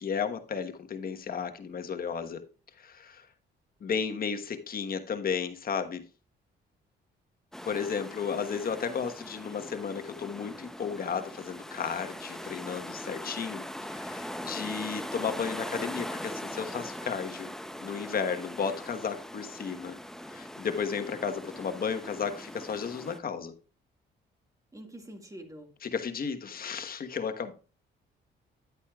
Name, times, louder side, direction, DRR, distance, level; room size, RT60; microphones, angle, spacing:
voice 1, 0.0-2.4 2.8-3.3 3.8-6.0 7.6-13.6 13.9-17.5 17.8-19.9 20.3-23.5 25.8-27.5, left 6 dB, 50° left, 1.3 m, -33 dB
sound 1, 7.5-23.2, equal, ahead, 0.7 m, -41 dB
voice 2, 24.7-25.7, right 1 dB, 15° right, 1.9 m, -45 dB
10.5 x 8.2 x 2.4 m
cardioid pair, 90°, 20 cm